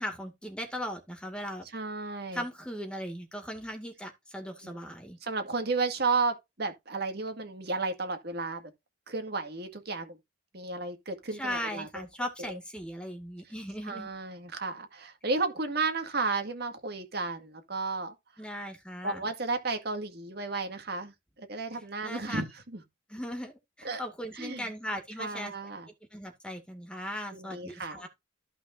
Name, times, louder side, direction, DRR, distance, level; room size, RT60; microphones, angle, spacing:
voice 1, 0.0-1.7 2.3-5.2 11.3-14.1 18.4-19.3 21.7-22.4 23.1-25.5 26.1-28.1, equal, 5° left, 2.1 m, -38 dB
voice 2, 1.7-2.4 4.6-4.8 5.2-8.6 9.1-10.2 10.5-12.0 13.9-18.1 19.0-21.1 21.4-22.5 22.7-22.8 23.8-24.0 24.4-24.7 25.2-25.9 27.3-28.0, right 3 dB, 55° right, 1.9 m, -33 dB
14.5 x 5.8 x 2.6 m
head